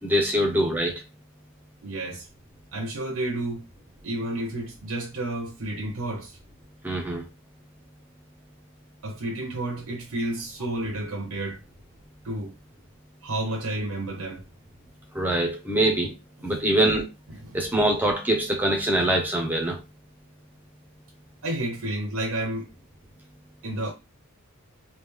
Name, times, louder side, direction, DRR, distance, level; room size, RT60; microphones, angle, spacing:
voice 1, 0.0-1.0 6.8-7.2 15.1-16.2 16.4-17.1 17.5-19.8, right 1 dB, 10° right, 0.8 m, -23 dB
voice 2, 1.8-2.3 2.7-3.6 4.0-6.4 9.0-11.6 12.2-12.5 13.2-14.4 17.4-17.6 21.4-22.7 23.6-23.9, right 1 dB, 75° right, 0.8 m, -31 dB
3.2 x 2.5 x 3.4 m
head